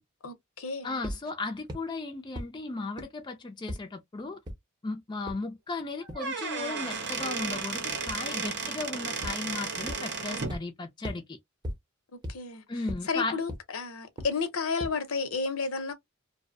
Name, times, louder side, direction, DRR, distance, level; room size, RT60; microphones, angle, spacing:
voice 1, 0.2-1.0 12.3-12.6 13.1-15.9, left 4 dB, 75° left, 0.7 m, -32 dB
voice 2, 0.8-4.4 4.8-11.4 12.7-13.4, left 3 dB, 20° left, 0.4 m, -36 dB
sound 1, 1.0-1.2 1.7-1.8 2.3-2.4 3.0-3.1 3.7-3.8 4.5-4.6 5.3-5.4 6.1-6.2 8.1-8.2 9.2-9.3 9.9-10.0 10.5-10.6 11.0-11.2 11.6-11.7 12.2-12.3 12.9-13.0 13.5-13.6 14.2-14.3 14.8-14.9, equal, 20° right, 0.7 m, -35 dB
Squeak / Wood, 6.0-10.6, right 4 dB, 55° right, 0.7 m, -34 dB
2.6 x 2.1 x 2.5 m
head